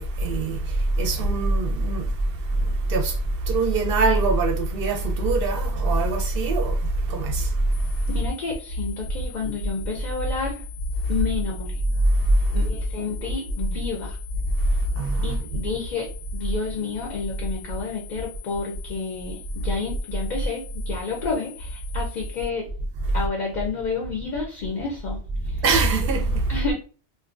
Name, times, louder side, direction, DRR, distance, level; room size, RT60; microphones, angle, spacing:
voice 1, 0.0-8.1 12.0-12.7 14.6-15.4 23.1-23.2 25.6-26.6, right 2 dB, 65° right, 0.7 m, -23 dB
sound 1, 7.7-22.5, left 19 dB, 85° left, 0.9 m, -46 dB
voice 2, 8.1-10.6 11.1-11.8 12.5-14.2 15.2-22.7 23.1-25.2 25.5-25.6 26.5-26.7, left 4 dB, 55° left, 0.6 m, -30 dB
2.5 x 2.2 x 2.4 m
omnidirectional pair, 1.1 m